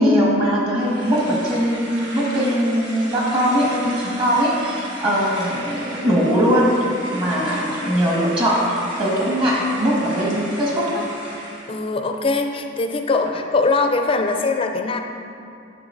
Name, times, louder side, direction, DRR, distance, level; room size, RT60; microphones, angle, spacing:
voice 1, 0.0-6.7 7.1-11.0, equal, 30° right, -5 dB, 1.5 m, -20 dB
sound 1, 0.8-11.7, right 1 dB, 80° right, 1.4 m, -35 dB
voice 2, 11.7-15.0, left 3 dB, 30° left, 5 dB, 0.4 m, -21 dB
9.2 x 6.8 x 2.6 m, 2.6 s
head